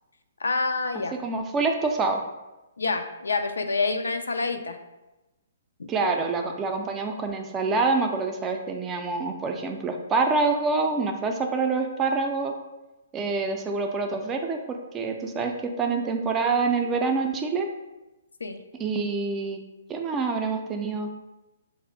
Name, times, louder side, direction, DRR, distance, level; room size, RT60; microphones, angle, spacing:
voice 1, 0.4-1.2 2.8-4.8 5.8-5.9 18.4-18.6, left 3 dB, 85° left, 8 dB, 0.3 m, -27 dB
voice 2, 1.2-2.2 5.9-12.5 13.1-14.6 14.9-17.7 18.8-19.6 19.9-21.1, right 4 dB, 20° right, 3 dB, 0.4 m, -26 dB
3.4 x 2.0 x 3.9 m, 1.0 s
hypercardioid pair, 135°, 0 cm